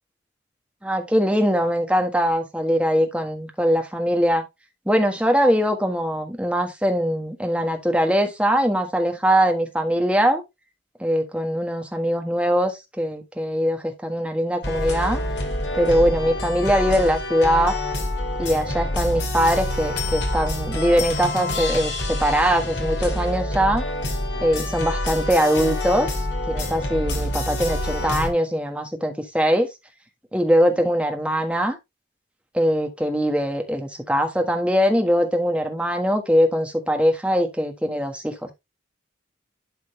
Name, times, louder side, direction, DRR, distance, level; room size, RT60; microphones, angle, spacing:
voice 1, 0.8-4.4 4.9-10.4 11.0-15.2 15.7-17.7 18.4-21.9 22.2-23.8 24.4-29.7 30.3-31.8 32.5-38.5, equal, 5° right, 1.4 m, -21 dB
sound 1, 14.6-28.3, left 1 dB, 65° left, 2.5 m, -27 dB
11.5 x 3.9 x 3.2 m
head